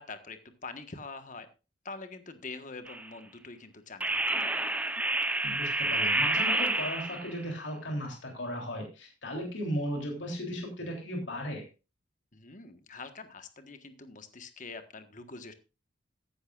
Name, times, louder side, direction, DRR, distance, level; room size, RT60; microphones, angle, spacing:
voice 1, 0.0-1.5 1.8-4.6 12.3-15.5, left 3 dB, 40° left, 9 dB, 1.4 m, -45 dB
sound 1, 2.9-3.1 4.0-7.4, right 2 dB, 5° right, 0.8 m, -29 dB
voice 2, 5.4-11.7, equal, 65° left, 1 dB, 3.4 m, -36 dB
14.5 x 11.5 x 2.5 m, 0.31 s
head